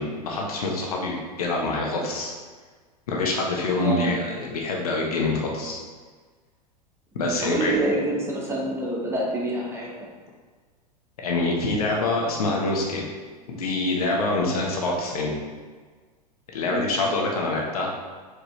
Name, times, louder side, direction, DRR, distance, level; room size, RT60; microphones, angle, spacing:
voice 1, 0.0-2.3 3.1-5.8 7.1-7.8 11.2-13.0 13.5-15.3 16.5-17.9, left 2 dB, 65° left, -1 dB, 1.3 m, -25 dB
voice 2, 3.7-4.1 7.2-9.9 16.7-16.9, right 1 dB, 10° right, -3 dB, 1.3 m, -27 dB
6.2 x 5.1 x 3.3 m, 1.5 s
figure-of-eight pair, 90°, 21 cm